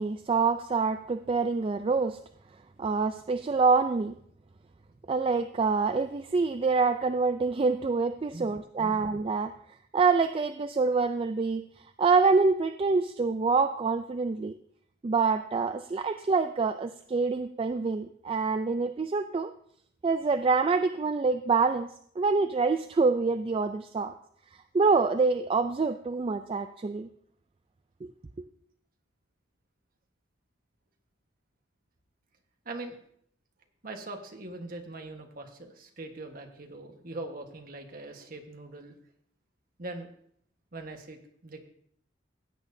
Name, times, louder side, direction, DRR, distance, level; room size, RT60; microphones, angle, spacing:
voice 1, 0.0-2.2 2.8-4.1 5.1-9.5 9.9-11.6 12.0-14.5 15.0-19.5 20.0-21.9 22.2-24.1 24.7-27.1, right 4 dB, 30° right, 9 dB, 0.3 m, -26 dB
voice 2, 32.6-33.0 33.8-38.9 39.8-40.1 40.7-41.6, right 2 dB, 50° right, 4 dB, 1.3 m, -41 dB
16.0 x 8.8 x 2.7 m, 0.66 s
head